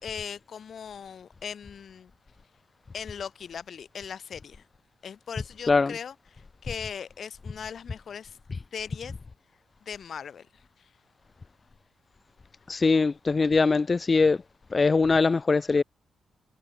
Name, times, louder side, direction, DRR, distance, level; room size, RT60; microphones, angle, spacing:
voice 1, 0.0-2.1 2.9-4.6 5.0-8.4 8.7-9.1 9.8-10.5 12.8-12.9, left 7 dB, 55° left, 4.9 m, -39 dB
voice 2, 12.7-14.4 14.7-15.8, left 4 dB, 30° left, 0.3 m, -22 dB
cardioid pair, 95°, 0 cm